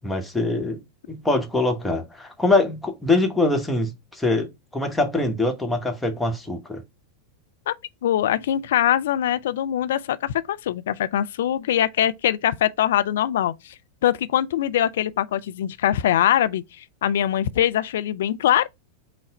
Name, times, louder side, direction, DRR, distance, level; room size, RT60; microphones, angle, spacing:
voice 1, 0.0-0.8 1.1-6.8, left 2 dB, 5° left, 1.1 m, -23 dB
voice 2, 8.0-13.7 14.0-18.7, left 11 dB, 60° left, 0.4 m, -22 dB
5.7 x 2.1 x 4.0 m
figure-of-eight pair, 90°, 0 cm